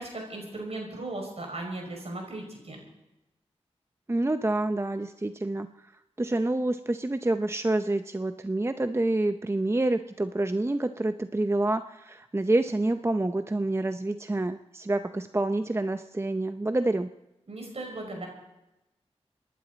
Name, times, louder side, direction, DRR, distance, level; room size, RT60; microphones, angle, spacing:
voice 1, 0.0-2.8 17.5-18.3, right 2 dB, 65° right, 1 dB, 5.6 m, -37 dB
voice 2, 4.1-5.9 6.2-17.1, right 2 dB, 25° right, 9 dB, 0.6 m, -27 dB
26.5 x 11.0 x 4.0 m, 0.94 s
cardioid pair, 45°, 11 cm